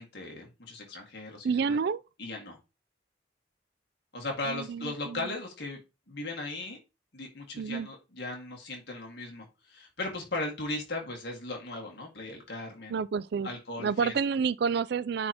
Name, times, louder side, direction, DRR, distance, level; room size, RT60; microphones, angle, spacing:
voice 1, 0.0-1.8 2.2-2.6 4.1-5.8 6.1-6.8 7.1-13.0 13.4-14.1, left 2 dB, 60° left, 1.9 m, -37 dB
voice 2, 1.4-2.0 4.5-5.2 7.6-7.9 12.9-13.5 13.8-15.3, right 5 dB, 60° right, 0.3 m, -29 dB
9.5 x 4.1 x 2.9 m
head